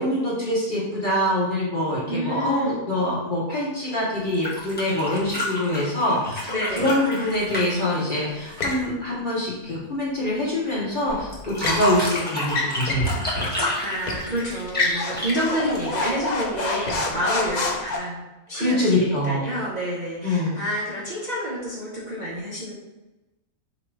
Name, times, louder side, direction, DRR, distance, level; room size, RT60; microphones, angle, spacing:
voice 1, 0.0-13.7 18.5-19.4 20.2-20.6, left 1 dB, 40° left, -6 dB, 1.0 m, -25 dB
voice 2, 2.1-2.7 6.5-7.0 13.8-18.2 18.5-22.8, equal, 40° right, -7 dB, 0.7 m, -29 dB
sound 1, 4.2-8.9 11.3-16.2 17.6-17.7, left 1 dB, 5° left, 1.0 m, -30 dB
sound 2, 8.6-8.8 11.0-11.9 12.5-13.1 13.5-13.6 14.1-14.3 14.7-18.0, left 3 dB, 80° left, 0.4 m, -27 dB
3.9 x 2.7 x 4.6 m, 1.0 s
omnidirectional pair, 1.5 m